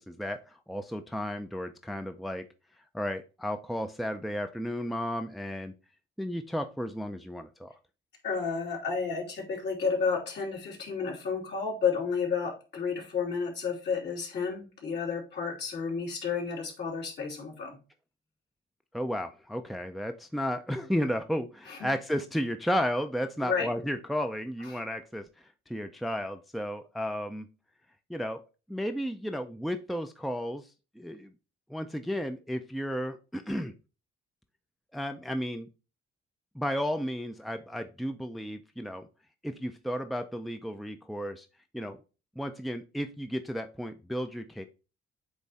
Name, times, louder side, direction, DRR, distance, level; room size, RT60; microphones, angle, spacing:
voice 1, 0.1-2.4 2.9-5.7 6.2-7.7 18.9-27.5 28.1-28.4 28.7-30.7 31.0-31.3 31.7-33.7 34.9-35.7 36.5-39.1 39.4-41.5 41.7-42.0 42.4-44.7, equal, ahead, 7 dB, 0.5 m, -33 dB
voice 2, 8.2-17.8 21.7-21.9 23.4-23.7 24.7-24.8, left 5 dB, 60° left, -2 dB, 3.2 m, -31 dB
8.2 x 3.2 x 4.2 m, 0.33 s
cardioid pair, 90°, 20 cm